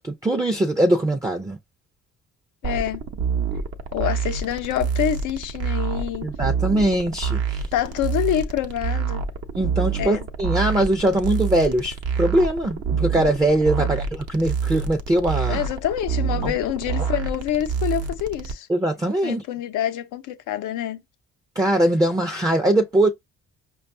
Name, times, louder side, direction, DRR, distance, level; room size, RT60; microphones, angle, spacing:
voice 1, 0.0-1.6 6.2-7.7 9.6-15.6 16.4-16.5 18.7-19.5 21.6-23.1, right 1 dB, 10° right, 0.5 m, -21 dB
voice 2, 2.6-3.0 3.9-6.3 7.7-9.2 10.0-10.2 13.8-13.9 15.5-18.7 19.2-21.0, left 11 dB, 85° left, 0.6 m, -26 dB
sound 1, 2.6-18.5, right 6 dB, 55° right, 0.7 m, -27 dB
5.1 x 2.3 x 2.6 m
cardioid pair, 85°, 30 cm